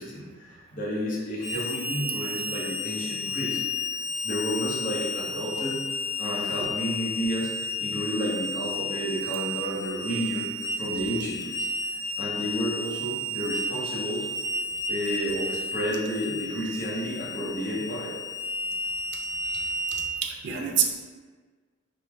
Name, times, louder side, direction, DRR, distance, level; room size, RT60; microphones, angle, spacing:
voice 1, 0.0-4.0 4.2-5.8 6.2-7.5 7.8-10.5 10.8-11.7 12.2-14.3 14.9-18.1, equal, 45° left, -6 dB, 0.8 m, -31 dB
Harmonica, 1.4-20.2, left 1 dB, 75° left, 0.6 m, -32 dB
voice 2, 20.2-20.9, right 8 dB, 55° right, 2 dB, 0.3 m, -26 dB
3.1 x 2.0 x 3.4 m, 1.5 s
head